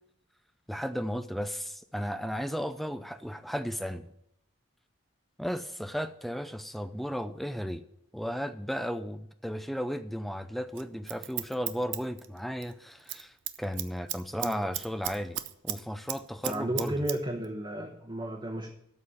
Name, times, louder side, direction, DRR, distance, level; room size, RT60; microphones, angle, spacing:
voice 1, 0.7-4.1 5.4-7.8 8.1-17.0, equal, ahead, 10 dB, 0.4 m, -35 dB
Scissors, 10.8-12.7 13.0-13.2 13.5-15.8 16.1-17.2 17.4-17.5, right 13 dB, 60° right, 0.6 m, -35 dB
voice 2, 16.4-18.7, right 1 dB, 25° right, -1 dB, 0.9 m, -33 dB
12.5 x 4.3 x 8.3 m, 0.75 s
head